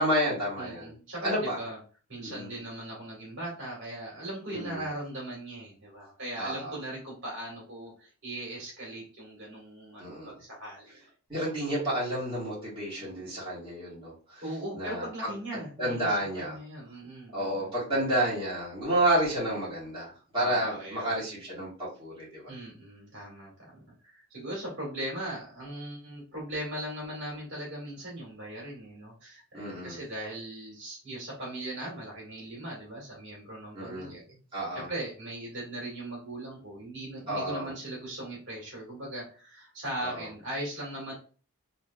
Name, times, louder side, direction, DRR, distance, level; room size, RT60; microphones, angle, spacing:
voice 1, 0.0-0.9 1.2-1.6 2.2-2.5 4.5-4.8 6.4-6.7 10.0-10.3 11.3-14.1 14.7-16.6 17.3-22.5 29.5-30.0 33.7-34.1 34.5-34.9 37.3-37.7 40.0-40.3, right 1 dB, 20° right, -9 dB, 1.6 m, -30 dB
voice 2, 0.6-1.8 2.1-11.0 14.4-18.0 20.4-21.2 22.5-41.1, right 1 dB, 55° right, -4 dB, 1.7 m, -39 dB
3.2 x 3.1 x 2.3 m, 0.38 s
head